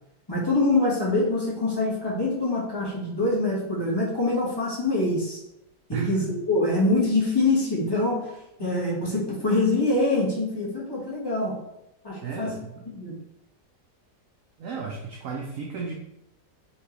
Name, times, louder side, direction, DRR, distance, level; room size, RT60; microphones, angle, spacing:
voice 1, 0.3-5.4 5.9-11.5 12.0-12.5 12.9-13.1, left 2 dB, 15° left, -6 dB, 0.9 m, -24 dB
voice 2, 5.9-6.3 8.6-8.9 12.2-12.9 14.6-15.9, right 5 dB, 75° right, 1 dB, 0.7 m, -34 dB
4.4 x 3.0 x 2.9 m, 0.84 s
omnidirectional pair, 1.9 m